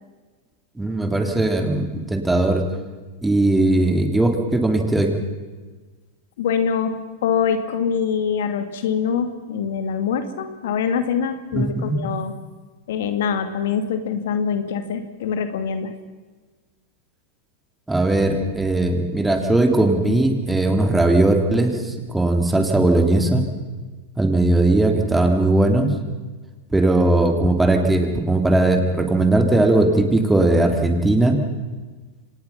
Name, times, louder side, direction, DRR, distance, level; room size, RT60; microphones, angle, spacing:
voice 1, 0.8-2.6 3.2-5.1 11.5-12.0 17.9-23.4 24.2-25.9 26.7-31.4, right 2 dB, 10° right, 3 dB, 3.3 m, -18 dB
voice 2, 6.4-12.3 12.9-15.9, left 7 dB, 70° left, 8 dB, 2.2 m, -24 dB
25.5 x 19.0 x 5.9 m, 1.3 s
hypercardioid pair, 115°, 0 cm